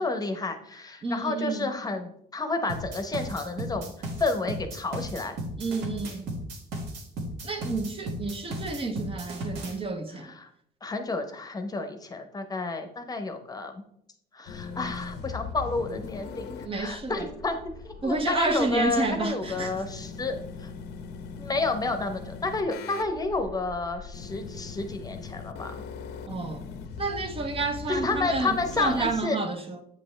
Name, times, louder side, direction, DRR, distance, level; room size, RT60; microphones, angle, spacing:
voice 1, 0.0-3.9 4.2-5.3 10.4-10.5 10.8-13.8 14.3-17.6 17.8-20.7 21.4-25.8 27.9-29.4, left 3 dB, 20° left, 0.9 m, -30 dB
voice 2, 1.0-1.7 5.6-6.4 7.4-10.3 16.6-17.3 18.0-19.8 26.3-26.7 27.0-29.8, right 3 dB, 35° right, 0.8 m, -30 dB
sound 1, 2.7-9.8, right 1 dB, 80° right, 1.6 m, -35 dB
sound 2, 14.5-29.2, left 5 dB, 80° left, 0.7 m, -40 dB
8.4 x 5.2 x 3.3 m
cardioid pair, 110°, 17 cm